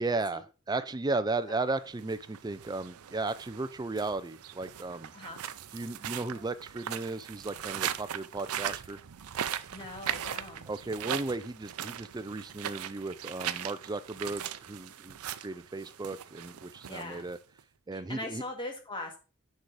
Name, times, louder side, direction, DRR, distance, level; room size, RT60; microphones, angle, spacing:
voice 1, 0.0-5.1 5.7-9.0 10.7-17.4 17.9-18.4, right 3 dB, 20° right, 0.4 m, -35 dB
sound 1, 1.9-17.6, right 10 dB, 85° right, 0.5 m, -39 dB
voice 2, 5.1-5.4 9.7-10.6 16.9-17.2 17.9-19.2, left 2 dB, 25° left, 1.8 m, -40 dB
6.6 x 4.7 x 5.0 m
head